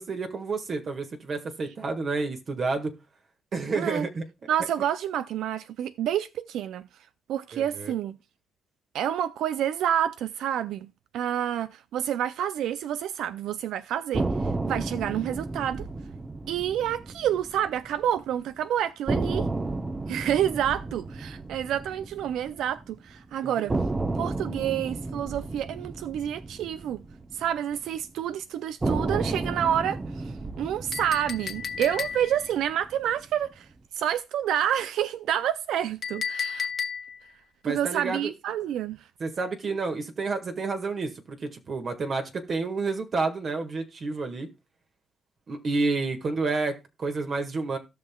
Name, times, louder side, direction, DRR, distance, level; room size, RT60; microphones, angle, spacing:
voice 1, 0.0-2.9 3.5-4.2 7.5-7.9 23.4-23.7 37.6-38.3 39.2-44.5 45.5-47.8, right 3 dB, 45° right, 1.6 m, -30 dB
voice 2, 3.7-4.1 4.5-6.9 7.3-8.2 8.9-15.9 16.5-19.5 20.1-23.8 24.2-27.0 27.3-33.7 33.9-36.7 37.6-39.1, right 10 dB, 80° right, 0.4 m, -28 dB
sound 1, 14.1-18.2 18.5-18.6 19.1-23.2 23.7-28.1 28.8-33.2, right 2 dB, 20° right, 0.9 m, -33 dB
Chink clink, 30.9-32.5 36.0-37.3, left 6 dB, 50° left, 1.1 m, -33 dB
17.0 x 5.7 x 2.3 m
cardioid pair, 90°, 0 cm